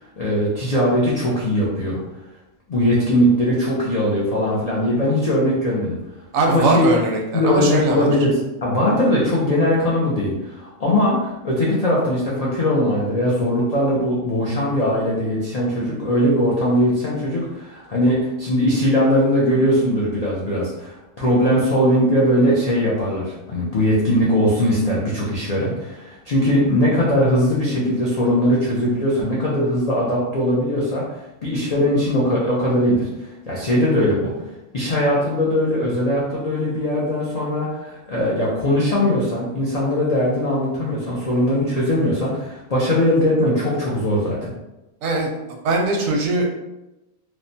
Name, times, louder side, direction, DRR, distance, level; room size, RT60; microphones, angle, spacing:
voice 1, 0.2-2.0 2.7-6.0 6.5-6.9 7.3-31.0 31.4-34.3 34.7-44.5, equal, 85° left, -6 dB, 0.3 m, -20 dB
voice 2, 6.3-8.1 45.0-46.5, right 2 dB, 75° right, 1 dB, 1.0 m, -21 dB
3.1 x 2.1 x 2.6 m, 0.97 s
omnidirectional pair, 1.4 m